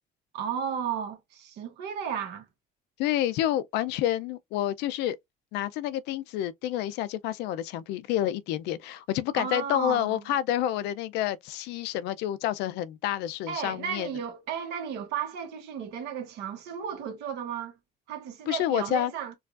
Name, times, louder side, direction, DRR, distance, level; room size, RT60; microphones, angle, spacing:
voice 1, 0.3-2.5 9.3-10.2 13.5-17.7 18.1-19.3, right 8 dB, 80° right, 1.1 m, -34 dB
voice 2, 3.0-5.2 5.5-14.1 18.5-19.1, left 12 dB, 90° left, 0.4 m, -29 dB
4.6 x 2.4 x 2.4 m
cardioid pair, 110°, 17 cm